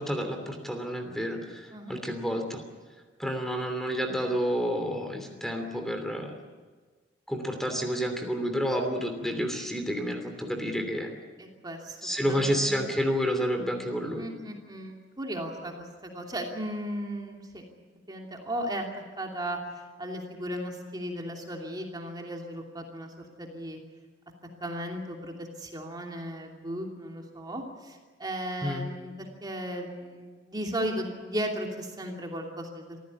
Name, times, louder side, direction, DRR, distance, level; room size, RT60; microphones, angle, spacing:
voice 1, 0.0-2.6 3.2-6.4 7.3-11.1 12.0-14.2 28.6-28.8, equal, ahead, 4 dB, 2.9 m, -30 dB
voice 2, 11.4-12.9 14.2-17.6 18.1-18.9 19.2-19.6 20.0-23.1 23.4-23.8 24.6-33.0, equal, 25° right, 1 dB, 2.8 m, -36 dB
26.0 x 15.5 x 9.7 m, 1.4 s
head